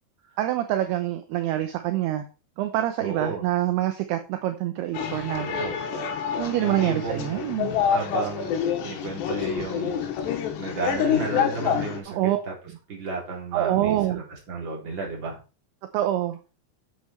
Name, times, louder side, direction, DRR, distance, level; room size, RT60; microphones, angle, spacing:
voice 1, 0.4-2.2 2.6-5.5 6.4-7.7 12.1-12.4 13.5-14.2 15.9-16.4, right 13 dB, 75° right, 7 dB, 2.6 m, -26 dB
voice 2, 3.0-3.4 5.4-5.8 6.6-7.5 7.9-8.5 8.8-10.0 10.6-12.2 12.5-12.6 12.9-15.4, right 4 dB, 25° right, -3 dB, 4.0 m, -33 dB
sound 1, 4.9-12.0, left 7 dB, 75° left, 3.7 m, -27 dB
9.4 x 7.8 x 4.5 m, 0.32 s
omnidirectional pair, 5.1 m